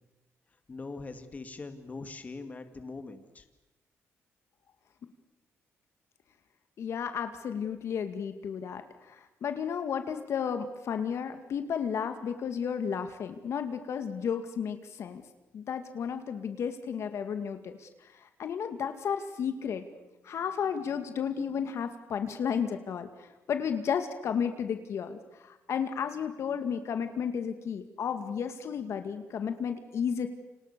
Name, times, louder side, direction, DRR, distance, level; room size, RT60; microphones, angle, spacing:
voice 1, 0.7-3.5, left 3 dB, 30° left, 8 dB, 2.4 m, -42 dB
voice 2, 6.8-8.8 9.4-15.2 15.5-17.7 18.4-19.8 20.2-23.1 23.5-25.2 25.7-30.3, left 7 dB, 65° left, 8 dB, 2.2 m, -32 dB
29.5 x 27.0 x 6.9 m, 1.0 s
cardioid pair, 110°, 5 cm